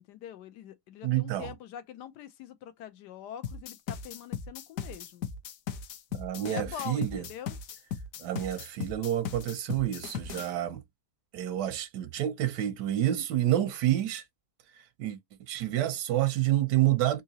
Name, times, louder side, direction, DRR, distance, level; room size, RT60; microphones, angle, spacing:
voice 1, 0.0-5.3 6.5-7.6 16.7-16.9, left 9 dB, 85° left, 1.3 m, -44 dB
voice 2, 1.0-1.5 6.1-7.2 8.2-10.8 11.3-14.2 15.0-17.2, right 13 dB, 90° right, 1.3 m, -28 dB
sound 1, 3.4-10.5, left 7 dB, 65° left, 0.9 m, -37 dB
3.8 x 2.8 x 2.8 m
omnidirectional pair, 1.8 m